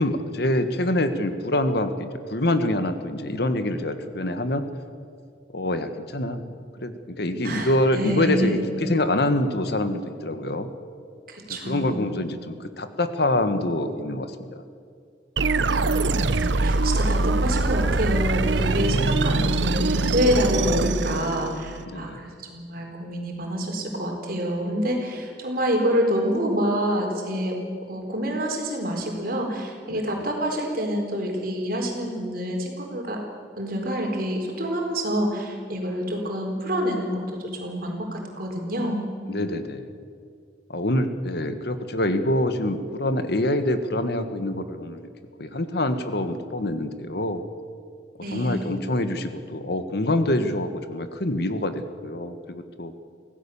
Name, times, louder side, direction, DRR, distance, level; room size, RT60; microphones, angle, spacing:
voice 1, 0.0-4.7 5.5-6.4 6.8-10.7 11.7-14.6 21.9-22.2 29.9-30.2 39.3-39.9 40.7-45.1 45.4-47.4 48.3-52.9, left 1 dB, 65° left, 9 dB, 1.5 m, -25 dB
voice 2, 7.4-8.6 11.3-12.2 15.6-27.6 27.9-33.2 33.6-39.0 48.2-48.8, equal, 55° right, 1 dB, 4.2 m, -27 dB
sound 1, 15.4-21.8, right 2 dB, 90° right, 0.8 m, -23 dB
24.5 x 16.5 x 7.1 m, 2.2 s
head